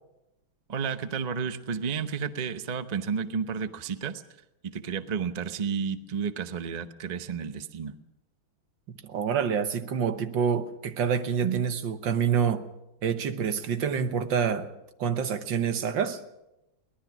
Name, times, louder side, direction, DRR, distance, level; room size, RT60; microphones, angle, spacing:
voice 1, 0.7-4.2 4.6-7.9 11.4-11.6, right 6 dB, 50° right, 0.4 m, -31 dB
voice 2, 8.9-12.7 13.0-14.7 15.0-16.2, right 7 dB, 70° right, 1.8 m, -27 dB
23.0 x 18.5 x 6.1 m
omnidirectional pair, 2.2 m